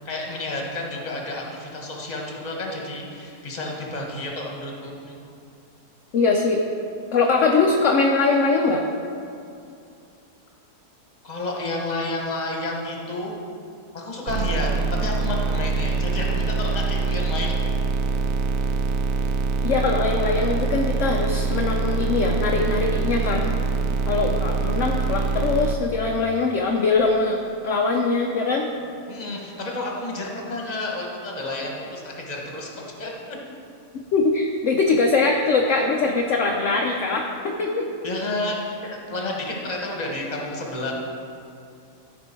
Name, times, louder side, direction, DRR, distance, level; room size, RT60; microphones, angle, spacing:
voice 1, 0.0-5.2 11.2-13.3 13.9-17.5 29.1-33.1 38.0-40.9, left 2 dB, 25° left, -1 dB, 1.3 m, -30 dB
voice 2, 6.1-6.6 7.1-8.8 19.6-23.5 24.1-27.4 27.6-28.7 34.1-37.9, left 3 dB, 60° left, 1 dB, 0.9 m, -22 dB
sound 1, 14.3-25.7, right 4 dB, 90° right, 1.2 m, -24 dB
14.0 x 5.3 x 4.4 m, 2.5 s
omnidirectional pair, 1.8 m